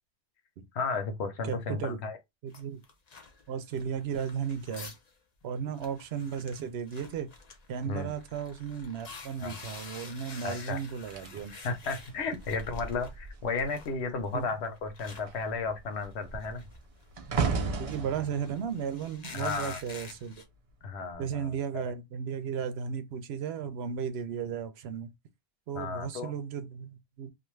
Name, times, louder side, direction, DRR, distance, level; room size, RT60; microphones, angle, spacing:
voice 1, 0.7-2.2 7.8-8.1 9.4-9.5 10.4-10.8 11.6-16.6 19.3-19.8 20.8-21.8 25.7-26.3, left 4 dB, 85° left, 1.0 m, -34 dB
voice 2, 1.4-2.0 2.4-2.8 3.5-4.9 5.4-7.3 7.7-11.5 14.3-14.5 17.3-17.5 17.8-20.3 21.2-25.1 25.7-27.3, right 7 dB, 80° right, 0.8 m, -35 dB
sound 1, 2.5-5.1 5.4-5.5 5.7-13.1 13.5-20.4, left 4 dB, 45° left, 0.6 m, -49 dB
sound 2, 11.1-13.8 14.1-14.5 14.8-20.1 20.9-21.1, right 5 dB, 50° right, 0.4 m, -36 dB
2.5 x 2.4 x 3.1 m
omnidirectional pair, 1.1 m